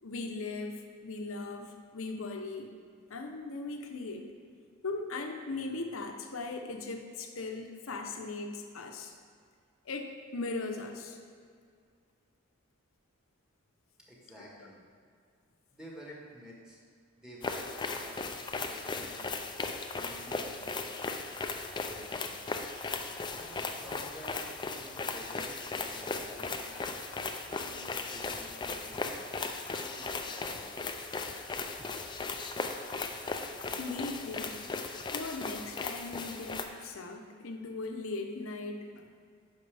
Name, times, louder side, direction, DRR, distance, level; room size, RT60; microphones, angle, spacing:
voice 1, 0.0-2.7 3.1-4.3 4.8-9.1 9.8-11.2 14.6-14.7 23.2-23.3 33.8-34.6 35.1-39.0, left 3 dB, 70° left, 4 dB, 0.8 m, -39 dB
voice 2, 14.1-14.8 15.7-16.8 17.1-19.3 19.9-21.0 21.8-22.3 23.3-24.5 24.8-27.0 27.6-29.3 29.8-30.7, equal, 5° right, -4 dB, 1.4 m, -50 dB
sound 1, 17.4-36.7, left 3 dB, 20° left, 0.4 m, -37 dB
9.5 x 5.9 x 3.4 m, 2.1 s
head